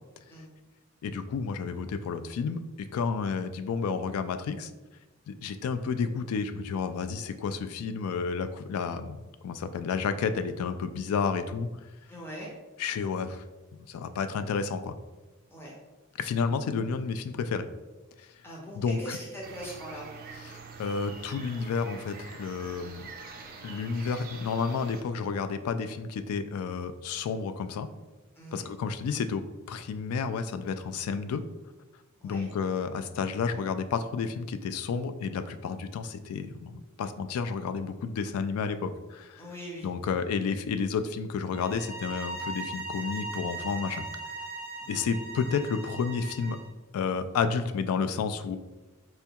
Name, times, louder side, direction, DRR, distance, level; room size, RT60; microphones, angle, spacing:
voice 1, 1.0-4.7 5.3-11.7 12.8-13.4 13.9-14.9 16.2-17.7 18.7-19.2 20.5-23.1 23.6-27.9 28.5-31.4 32.2-39.4 39.8-44.1 44.9-46.6 46.9-48.6, left 5 dB, 90° left, 13 dB, 0.3 m, -31 dB
voice 2, 12.1-12.5 15.5-15.7 18.4-20.1 28.4-28.7 32.2-32.5 39.4-40.1 44.8-45.0, equal, 10° left, -4 dB, 0.6 m, -41 dB
sound 1, 19.4-25.0, right 4 dB, 45° right, 0.4 m, -45 dB
sound 2, 41.5-46.7, right 3 dB, 50° left, 1.2 m, -39 dB
4.3 x 2.3 x 2.8 m, 1.1 s
head